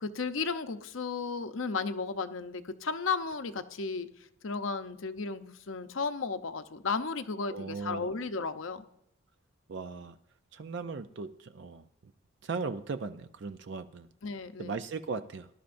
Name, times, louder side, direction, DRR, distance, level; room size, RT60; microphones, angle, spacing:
voice 1, 0.0-4.1 4.4-8.9 14.2-14.8, left 4 dB, 70° left, 9 dB, 0.7 m, -34 dB
voice 2, 7.5-8.1 9.7-10.2 10.5-12.1 12.4-14.1 14.6-15.5, right 4 dB, 55° right, 10 dB, 0.5 m, -38 dB
19.0 x 11.5 x 2.6 m, 0.76 s
head